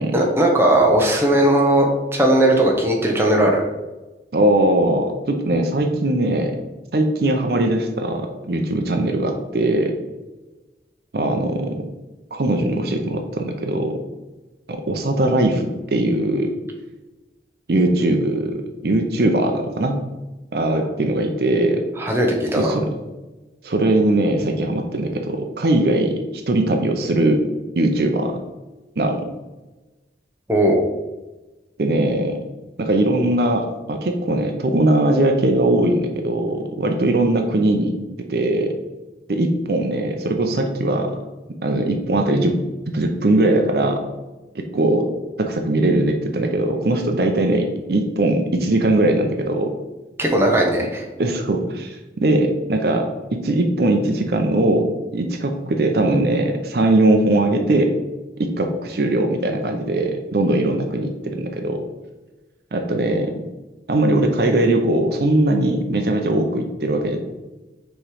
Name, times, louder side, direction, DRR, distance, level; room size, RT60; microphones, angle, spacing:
voice 1, 0.1-3.7 22.0-22.7 30.5-30.8 50.2-51.1, right 1 dB, 15° right, 0 dB, 0.8 m, -17 dB
voice 2, 4.3-6.5 6.9-9.9 11.1-11.8 12.3-14.0 14.7-16.5 17.7-20.0 20.5-21.8 22.6-22.9 23.6-26.2 26.5-27.4 27.8-28.4 29.0-29.3 31.8-32.4 32.8-37.9 38.3-38.7 39.3-41.1 41.6-42.5 42.9-44.0 44.5-45.1 45.4-49.7 51.2-53.1 53.4-57.9 58.4-61.8 62.7-63.4 63.9-67.2, right 1 dB, 60° right, 4 dB, 0.6 m, -20 dB
6.2 x 3.1 x 4.8 m, 1.1 s
head